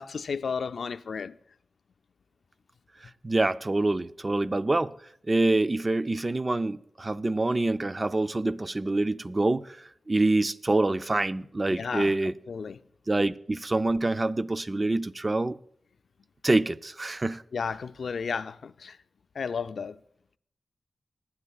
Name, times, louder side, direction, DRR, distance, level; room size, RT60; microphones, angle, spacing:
voice 1, 0.0-1.3 11.7-12.2 12.5-12.8 17.5-19.0 19.4-20.0, left 5 dB, 75° left, 0.4 m, -33 dB
voice 2, 3.2-4.9 5.3-12.3 13.1-15.6 16.4-17.4, right 2 dB, 30° right, 0.3 m, -26 dB
20.0 x 11.0 x 2.3 m
wide cardioid pair, 100°, 0 cm